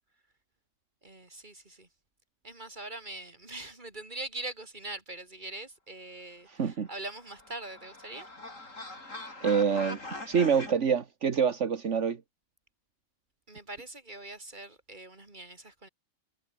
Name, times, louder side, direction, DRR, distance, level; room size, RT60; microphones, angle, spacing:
voice 1, 1.0-1.9 2.4-8.3 13.5-15.9, right 2 dB, 35° right, 4.0 m, -42 dB
voice 2, 6.5-6.9 9.4-10.0 10.3-12.2, right 6 dB, 65° right, 1.7 m, -26 dB
sound 1, 6.8-10.7, left 2 dB, 90° left, 5.8 m, -42 dB
omnidirectional pair, 1.3 m